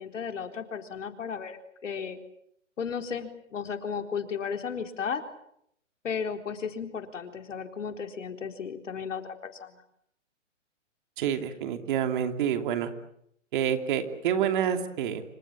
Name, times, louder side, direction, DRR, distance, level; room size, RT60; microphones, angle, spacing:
voice 1, 0.0-2.2 2.8-5.2 6.0-9.8, left 6 dB, 70° left, 6 dB, 4.1 m, -34 dB
voice 2, 11.2-12.9 13.5-15.2, right 9 dB, 40° right, 7 dB, 2.9 m, -28 dB
27.0 x 26.0 x 7.4 m, 0.73 s
hypercardioid pair, 150°, 38 cm